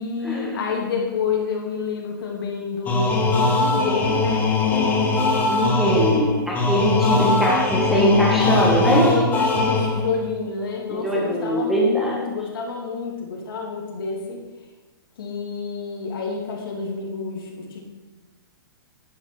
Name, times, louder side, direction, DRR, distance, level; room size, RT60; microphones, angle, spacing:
voice 1, 0.0-4.5 9.0-14.4 15.2-17.8, left 5 dB, 75° left, 0 dB, 3.2 m, -29 dB
sound 1, 2.9-10.2, left 3 dB, 15° left, 1.6 m, -21 dB
voice 2, 5.5-9.1 10.9-12.2, equal, ahead, -3 dB, 1.8 m, -21 dB
10.5 x 7.2 x 6.4 m, 1.2 s
hypercardioid pair, 155°, 12 cm